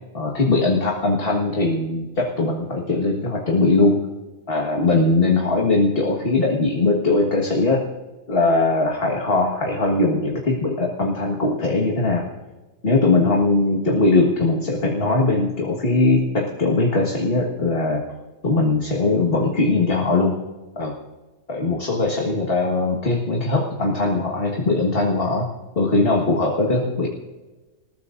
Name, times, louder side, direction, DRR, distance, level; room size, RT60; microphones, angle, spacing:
voice 1, 0.1-4.1 4.5-7.9 8.3-12.3 12.8-18.0 18.4-20.4 20.8-20.9 21.5-25.5 25.8-27.1, left 2 dB, 40° left, -1 dB, 1.8 m, -20 dB
27.5 x 14.5 x 2.6 m, 1.2 s
omnidirectional pair, 1.5 m